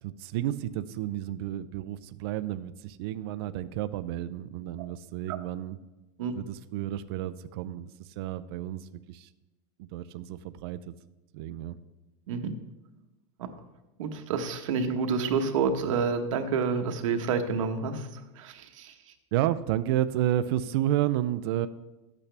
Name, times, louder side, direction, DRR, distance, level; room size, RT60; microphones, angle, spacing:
voice 1, 0.0-5.8 6.3-9.3 9.8-10.9 11.3-11.8 19.3-21.7, right 12 dB, 50° right, 12 dB, 0.4 m, -31 dB
voice 2, 14.0-18.1 18.4-18.9, right 5 dB, 90° right, 6 dB, 1.2 m, -28 dB
12.0 x 8.3 x 3.4 m, 1.0 s
supercardioid pair, 175°, 16 cm